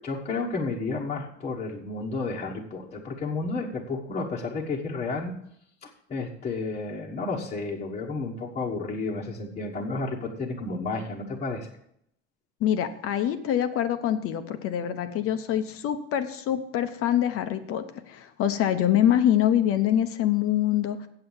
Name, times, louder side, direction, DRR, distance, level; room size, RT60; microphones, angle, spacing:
voice 1, 0.0-5.3 5.8-11.7, left 3 dB, 20° left, -3 dB, 1.2 m, -31 dB
voice 2, 12.6-21.1, left 10 dB, 50° left, 9 dB, 0.9 m, -25 dB
7.9 x 7.8 x 7.2 m, 0.73 s
cardioid pair, 135°, 30 cm